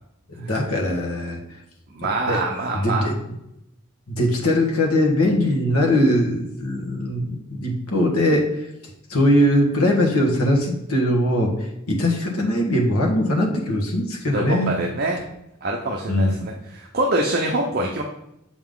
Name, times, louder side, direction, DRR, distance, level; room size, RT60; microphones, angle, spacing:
voice 1, 0.4-1.4 2.3-2.4 2.7-3.2 4.1-8.5 9.1-11.6 11.9-14.7 16.1-16.5, left 1 dB, 90° left, 0 dB, 1.5 m, -21 dB
voice 2, 1.9-3.1 14.3-15.2 15.6-18.0, right 2 dB, 45° right, 0 dB, 0.7 m, -25 dB
7.0 x 5.4 x 3.7 m, 0.84 s
head